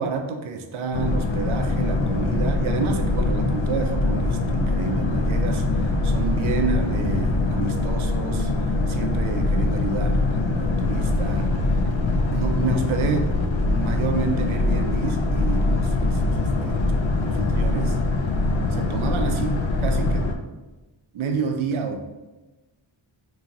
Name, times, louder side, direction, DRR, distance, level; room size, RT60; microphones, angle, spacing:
voice 1, 0.0-11.5 12.3-13.3 13.6-16.9 17.2-18.0 18.7-20.3 21.1-22.0, right 4 dB, 80° right, 5 dB, 0.5 m, -29 dB
Boat Water vehicle, 0.9-20.3, left 2 dB, 70° left, 0.6 m, -23 dB
2.9 x 2.7 x 3.7 m, 1.1 s
wide cardioid pair, 70°, 47 cm